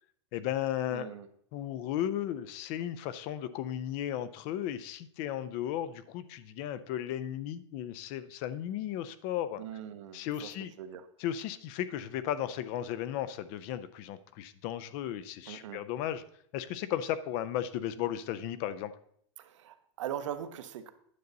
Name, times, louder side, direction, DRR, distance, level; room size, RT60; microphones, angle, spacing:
voice 1, 0.3-1.1 1.5-9.6 10.1-10.7 11.2-16.2 16.5-18.9, left 11 dB, 35° left, 15 dB, 0.4 m, -35 dB
voice 2, 0.9-1.3 9.6-11.1 15.5-15.8 19.4-20.9, right 10 dB, 75° right, 10 dB, 0.9 m, -41 dB
9.5 x 6.6 x 3.9 m, 0.68 s
supercardioid pair, 165°, 16 cm